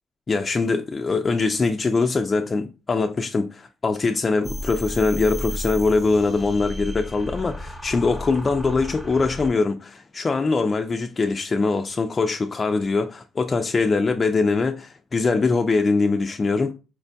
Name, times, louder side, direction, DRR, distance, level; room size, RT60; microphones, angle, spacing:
voice 1, 0.3-16.7, left 3 dB, 30° left, 0.3 m, -22 dB
sound 1, 4.4-9.5, left 1 dB, 15° right, 0.9 m, -33 dB
4.4 x 2.1 x 2.6 m
cardioid pair, 90°, 0 cm